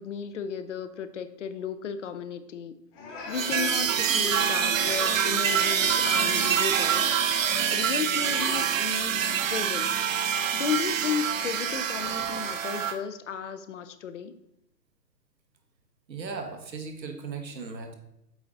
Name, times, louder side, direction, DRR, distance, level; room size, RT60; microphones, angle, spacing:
voice 1, 0.0-2.8 3.3-7.1 7.7-10.0 10.5-14.3, left 7 dB, 50° left, 11 dB, 0.5 m, -34 dB
sound 1, 2.9-6.6 6.8-9.5 9.8-10.2 11.2-11.6 11.9-12.7, left 3 dB, 20° left, 1.0 m, -41 dB
sound 2, 3.3-12.9, right 8 dB, 50° right, 0.6 m, -26 dB
voice 2, 16.1-17.9, right 4 dB, 85° right, 5 dB, 1.3 m, -37 dB
8.0 x 3.9 x 3.7 m, 0.82 s
figure-of-eight pair, 130°, 50 cm